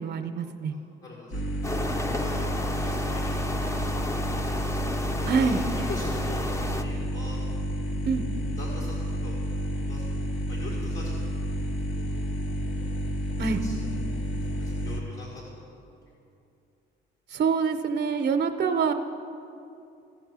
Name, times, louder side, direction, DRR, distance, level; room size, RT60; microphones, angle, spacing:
voice 1, 0.0-0.7 5.3-5.6 8.1-8.2 13.4-13.6 17.3-18.9, right 5 dB, 60° right, 7 dB, 0.6 m, -25 dB
voice 2, 0.7-1.4 1.9-3.7 5.1-6.5 6.8-7.4 8.6-9.4 9.8-11.1 11.9-12.4 13.4-13.9 14.5-15.8, left 2 dB, 65° left, -5 dB, 1.8 m, -43 dB
sound 1, 1.3-15.0, equal, 85° left, 1.1 m, -30 dB
sound 2, 1.6-6.8, left 1 dB, 15° left, 0.6 m, -33 dB
15.5 x 5.4 x 6.1 m, 2.6 s
cardioid pair, 90°, 20 cm